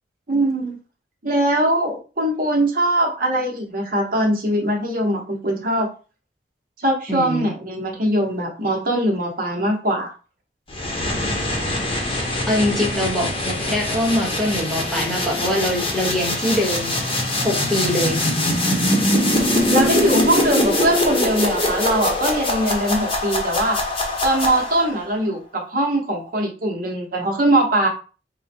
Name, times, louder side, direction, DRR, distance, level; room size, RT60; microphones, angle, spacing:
voice 1, 0.3-0.8 1.2-5.9 6.8-10.1 19.7-23.8 24.2-27.9, right 1 dB, 50° right, 0 dB, 1.0 m, -21 dB
voice 2, 7.1-7.5 12.5-16.9 17.4-18.2, left 1 dB, ahead, -3 dB, 1.0 m, -23 dB
sound 1, 10.7-25.0, left 1 dB, 30° left, 0.9 m, -23 dB
3.8 x 2.2 x 4.3 m, 0.35 s
head